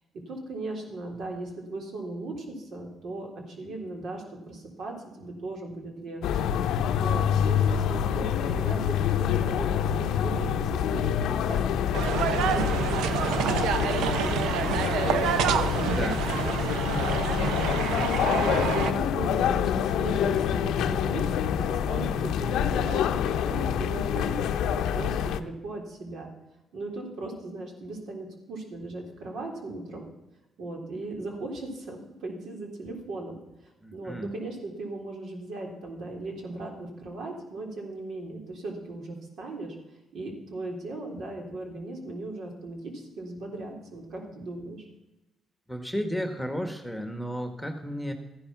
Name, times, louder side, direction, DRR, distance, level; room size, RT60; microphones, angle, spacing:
voice 1, 0.1-6.3 7.0-11.6 12.1-21.2 21.6-26.3 26.7-30.1 30.6-33.4 33.6-39.8 40.1-44.9, right 2 dB, 70° right, 2 dB, 3.6 m, -38 dB
sound 1, 6.2-25.4, left 9 dB, 85° left, 0.7 m, -26 dB
sound 2, 11.9-18.9, right 9 dB, 90° right, 0.7 m, -28 dB
voice 2, 15.9-16.2 17.4-17.6 33.8-34.3 45.7-48.1, equal, ahead, 6 dB, 1.5 m, -33 dB
14.0 x 10.5 x 6.0 m, 0.99 s
cardioid pair, 90°, 0 cm